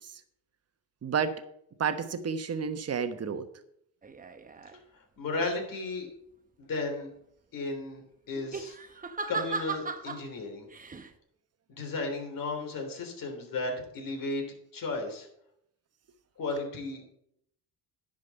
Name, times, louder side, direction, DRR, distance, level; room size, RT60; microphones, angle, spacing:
voice 1, 1.0-1.4 1.8-3.4, right 6 dB, 40° right, 9 dB, 1.2 m, -30 dB
sound 1, 4.0-4.8 8.3-10.2 10.7-11.1, right 4 dB, 20° right, 0.9 m, -37 dB
voice 2, 5.2-6.1 6.6-7.1 7.5-8.0 8.3-8.8 9.3-10.7 11.7-14.4 14.7-15.3 16.4-17.0, left 3 dB, 60° left, 3 dB, 3.5 m, -34 dB
10.5 x 5.3 x 7.0 m, 0.73 s
cardioid pair, 90°, 38 cm